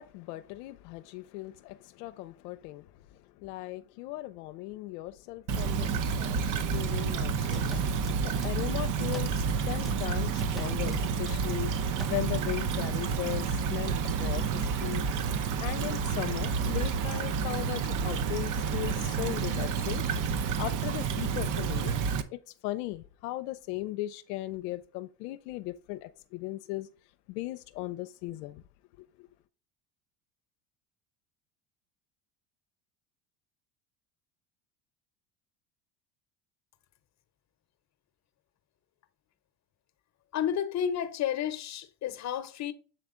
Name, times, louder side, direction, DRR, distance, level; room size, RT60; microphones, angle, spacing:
voice 1, 0.0-7.8 8.2-15.0 15.6-21.9 22.3-26.9 27.3-28.6 29.2-29.3, left 17 dB, 80° left, 0.6 m, -38 dB
Stream / Trickle dribble, 5.5-22.2, right 6 dB, 40° right, 0.7 m, -30 dB
sound 1, 7.5-8.8 9.1-9.5 9.9-11.7 12.0-12.2, left 1 dB, ahead, 0.4 m, -42 dB
voice 2, 40.3-42.7, left 9 dB, 35° left, 0.9 m, -31 dB
7.8 x 3.3 x 3.7 m
supercardioid pair, 90°, 47 cm